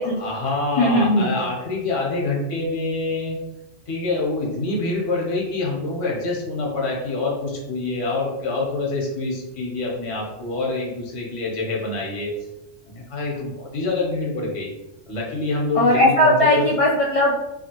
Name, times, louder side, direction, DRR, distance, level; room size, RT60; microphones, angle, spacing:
voice 1, 0.2-3.4 3.9-12.3 12.8-14.7 15.1-16.7, left 2 dB, 75° left, -2 dB, 1.3 m, -26 dB
voice 2, 0.8-1.3 15.7-17.4, left 1 dB, 60° left, -4 dB, 0.3 m, -18 dB
3.3 x 2.4 x 2.8 m, 0.93 s
omnidirectional pair, 1.3 m